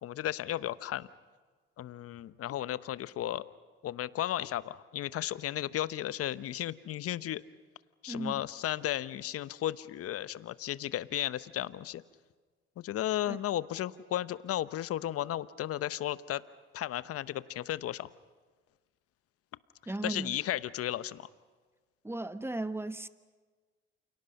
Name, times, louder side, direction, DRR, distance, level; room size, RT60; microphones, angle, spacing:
voice 1, 0.0-1.1 1.8-3.4 3.8-7.4 8.0-12.0 12.8-16.4 16.7-18.1 20.0-21.3, left 12 dB, 50° left, 0.9 m, -34 dB
voice 2, 8.1-8.4 13.3-13.4 19.9-20.4 22.0-23.1, right 2 dB, 10° right, 1.2 m, -36 dB
29.0 x 28.5 x 5.4 m
hypercardioid pair, 60°, 30 cm